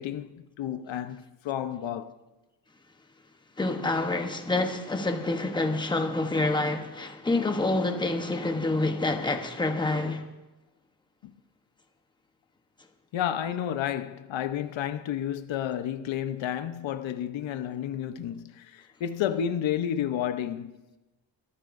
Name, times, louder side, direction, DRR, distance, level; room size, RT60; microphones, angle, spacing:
voice 1, 0.0-2.1 11.2-11.3 13.1-20.7, left 10 dB, 85° left, 0.9 m, -31 dB
voice 2, 3.6-10.2, left 2 dB, 10° left, 1.0 m, -27 dB
24.0 x 14.5 x 2.6 m
wide cardioid pair, 155°, 44 cm